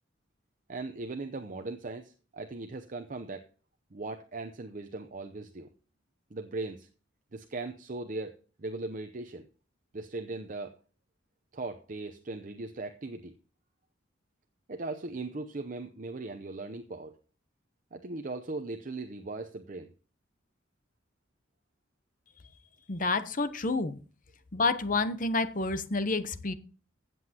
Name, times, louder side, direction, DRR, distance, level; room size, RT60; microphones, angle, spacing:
voice 1, 0.7-3.4 3.9-5.7 6.3-6.9 7.3-9.4 9.9-10.8 11.5-13.3 14.7-17.1 17.9-19.9, right 3 dB, 45° right, 7 dB, 0.7 m, -39 dB
voice 2, 22.9-24.0 24.5-26.5, left 3 dB, 45° left, 12 dB, 0.8 m, -29 dB
15.0 x 7.9 x 2.9 m, 0.37 s
head